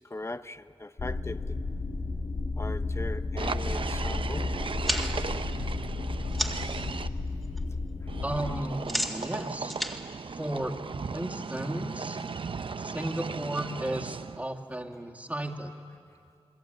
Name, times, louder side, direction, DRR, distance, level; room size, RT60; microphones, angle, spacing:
voice 1, 0.0-1.6 2.5-4.5 8.0-8.1, left 2 dB, 25° left, 12 dB, 0.7 m, -39 dB
sound 1, 1.0-8.6, left 3 dB, 60° left, 1.6 m, -33 dB
sound 2, 3.4-7.1 8.1-14.5, right 5 dB, 60° right, 0.6 m, -37 dB
sound 3, 4.8-6.8 7.2-7.6 7.9-11.1, equal, ahead, 2.0 m, -35 dB
voice 2, 8.2-9.7 10.4-10.7 11.1-12.2 12.8-15.7, right 1 dB, 15° right, 1 dB, 2.1 m, -34 dB
28.5 x 21.0 x 9.0 m, 2.4 s
wide cardioid pair, 65°, 10 cm